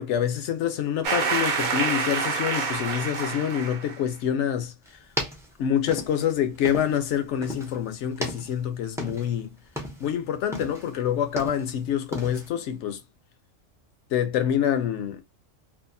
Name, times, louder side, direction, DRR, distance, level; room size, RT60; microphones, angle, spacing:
voice 1, 0.0-4.7 5.6-9.5 10.0-13.0 14.1-15.2, left 9 dB, 70° left, 0.9 m, -26 dB
sound 1, 1.0-4.0, right 5 dB, 55° right, 0.5 m, -27 dB
sound 2, 4.9-7.1 7.4-7.8 8.1-9.4 9.7-10.1 10.5-11.8 12.1-12.5, equal, 5° right, 0.3 m, -35 dB
2.7 x 2.4 x 2.5 m
omnidirectional pair, 1.3 m